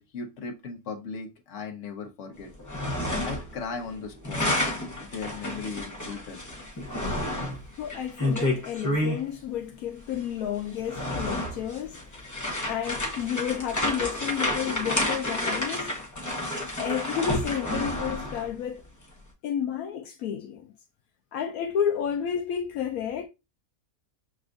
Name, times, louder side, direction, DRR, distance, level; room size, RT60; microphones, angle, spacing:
voice 1, 0.0-2.5 3.2-4.5 5.0-6.4, left 4 dB, 60° left, 1.2 m, -37 dB
sound 1, 2.5-3.6 3.8-9.2 10.1-10.2 10.7-18.5, left 1 dB, 15° left, 0.6 m, -30 dB
voice 2, 7.8-16.0 16.5-18.9 19.4-20.7 21.3-23.3, left 9 dB, 80° left, 1.0 m, -31 dB
6.9 x 2.3 x 2.4 m
omnidirectional pair, 1.5 m